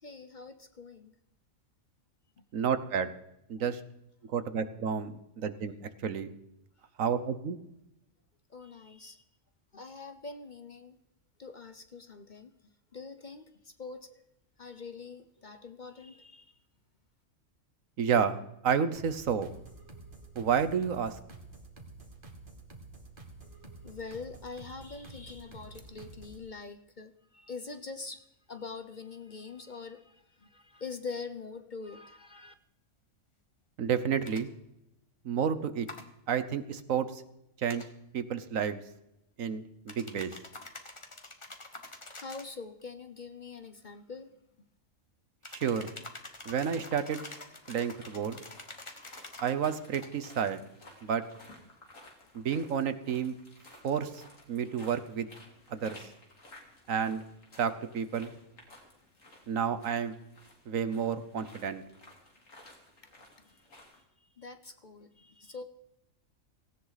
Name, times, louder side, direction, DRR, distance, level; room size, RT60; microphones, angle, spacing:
voice 1, 0.0-1.1 2.4-2.5 8.5-9.2 9.7-11.0 11.4-12.5 12.9-14.2 14.6-16.5 23.8-32.5 42.2-44.3 63.4-63.6 64.2-65.6, left 4 dB, 40° left, 10 dB, 0.8 m, -44 dB
voice 2, 2.5-3.1 3.5-3.8 4.3-5.7 6.0-6.3 7.0-7.6 18.0-18.4 18.6-19.5 20.3-21.1 33.8-34.5 35.2-35.9 36.3-37.2 37.6-37.8 38.1-38.8 39.4-40.3 45.5-45.9 46.4-47.2 47.7-48.4 49.4-50.6 51.0-51.2 52.3-53.3 53.8-54.1 54.5-55.3 55.7-56.0 56.9-57.2 57.6-58.3 59.5-60.2 60.7-61.8, right 7 dB, 75° right, 12 dB, 1.4 m, -30 dB
sound 1, 18.9-26.5, right 3 dB, 40° right, 1.9 m, -50 dB
sound 2, 34.2-34.4 35.9-36.1 37.7-37.9 39.9-42.5 45.4-49.6 49.9-50.1, left 2 dB, 25° left, 1.4 m, -47 dB
sound 3, 46.1-64.0, left 1 dB, 75° left, 3.4 m, -56 dB
17.5 x 16.5 x 4.1 m, 0.83 s
omnidirectional pair, 1.4 m